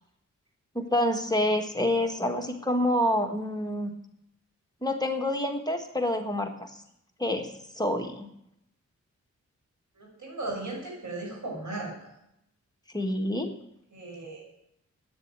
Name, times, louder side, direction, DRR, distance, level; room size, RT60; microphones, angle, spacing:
voice 1, 0.7-3.9 4.8-6.8 7.2-7.5 7.8-8.3 12.9-13.5, left 1 dB, 15° left, 3 dB, 1.5 m, -27 dB
voice 2, 9.9-12.1 13.9-14.5, right 2 dB, 75° right, -1 dB, 6.5 m, -37 dB
10.5 x 9.2 x 9.0 m, 0.78 s
wide cardioid pair, 105°, 30 cm